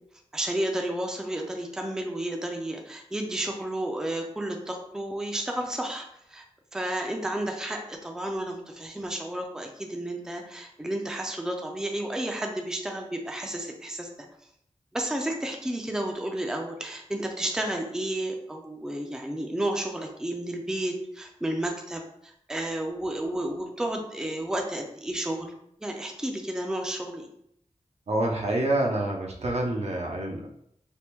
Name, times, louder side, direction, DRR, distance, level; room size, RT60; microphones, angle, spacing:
voice 1, 0.3-6.4 6.7-14.1 14.9-25.5 25.8-27.3, right 1 dB, 5° right, 2 dB, 0.4 m, -32 dB
voice 2, 28.1-30.5, right 1 dB, 65° right, 0 dB, 0.6 m, -27 dB
3.4 x 2.0 x 2.9 m, 0.71 s
wide cardioid pair, 85°, 12 cm